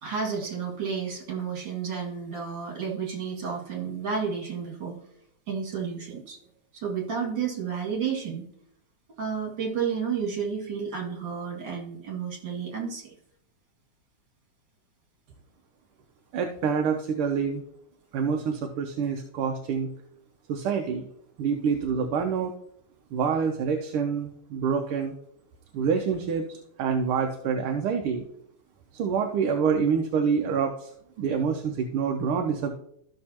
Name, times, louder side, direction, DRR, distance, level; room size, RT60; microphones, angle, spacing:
voice 1, 0.0-5.0 5.5-6.4 6.7-8.4 9.2-13.1, right 6 dB, 60° right, -2 dB, 3.0 m, -31 dB
voice 2, 16.3-17.6 18.1-19.9 20.5-21.1 21.4-22.5 23.1-25.1 25.7-26.4 26.8-28.3 28.9-30.9 31.2-32.8, right 6 dB, 80° right, 4 dB, 1.6 m, -26 dB
13.5 x 6.4 x 2.9 m, 0.73 s
omnidirectional pair, 2.4 m